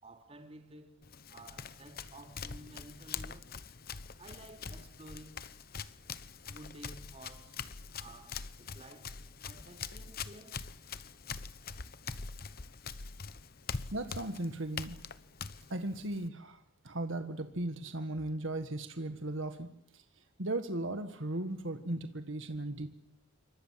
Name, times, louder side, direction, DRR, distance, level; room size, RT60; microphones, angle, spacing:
voice 1, 0.0-1.0 1.3-3.5 4.2-5.4 6.5-7.6 8.0-9.2 9.5-10.7, right 1 dB, 30° right, 3.1 m, -53 dB
Run, 1.0-16.3, left 5 dB, 45° left, 1.0 m, -44 dB
voice 2, 13.9-15.0 15.7-20.0 20.4-22.9, right 1 dB, 65° right, 1.8 m, -37 dB
28.5 x 25.0 x 7.6 m
head